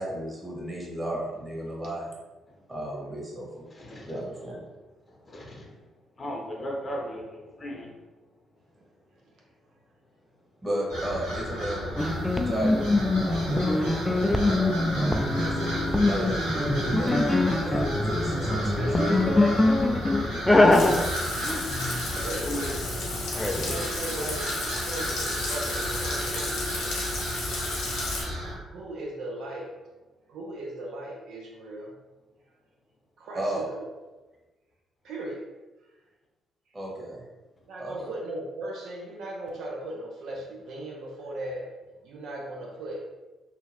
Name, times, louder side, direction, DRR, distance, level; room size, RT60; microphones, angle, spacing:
voice 1, 0.0-2.1 2.7-3.7 4.1-4.6 10.6-11.8 12.3-12.8 13.2-19.4 33.3-33.7 36.7-37.2 37.8-38.1, right 1 dB, 25° right, -4 dB, 1.3 m, -34 dB
voice 2, 3.7-4.1 5.3-5.7 6.2-7.9 22.2-22.7 23.5-23.8 24.1-24.3, equal, 40° left, -1 dB, 0.7 m, -36 dB
sound 1, 10.9-28.5, equal, 90° right, 0.9 m, -33 dB
sound 2, 12.0-22.5 23.4-23.9, left 2 dB, 15° left, 0.3 m, -24 dB
voice 3, 20.6-21.1 21.6-21.8 22.1-23.0 23.5-27.1 28.6-29.8 30.3-32.0 33.2-33.9 35.0-35.5 37.7-41.7 42.0-43.1, right 1 dB, 65° right, -1 dB, 0.5 m, -38 dB
Frying (food), 20.7-28.2, left 3 dB, 70° left, 0.8 m, -34 dB
2.8 x 2.4 x 2.8 m, 1.1 s
hypercardioid pair, 45°, 0 cm